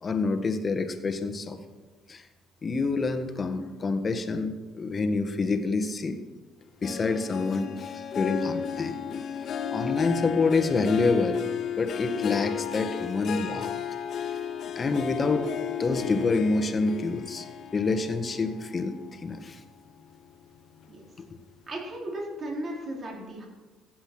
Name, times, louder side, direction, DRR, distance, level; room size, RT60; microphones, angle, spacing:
voice 1, 0.0-1.6 2.1-2.2 2.6-6.2 6.8-11.5 11.8-13.7 14.7-15.5 15.8-17.5 17.7-19.6, left 3 dB, 35° left, 8 dB, 1.6 m, -27 dB
Harp, 6.8-19.5 20.0-20.4 20.8-20.9, left 8 dB, 55° left, 1.1 m, -34 dB
voice 2, 21.7-23.5, right 1 dB, 40° right, -2 dB, 4.3 m, -35 dB
15.5 x 7.8 x 6.2 m, 1.3 s
hypercardioid pair, 65°, 0 cm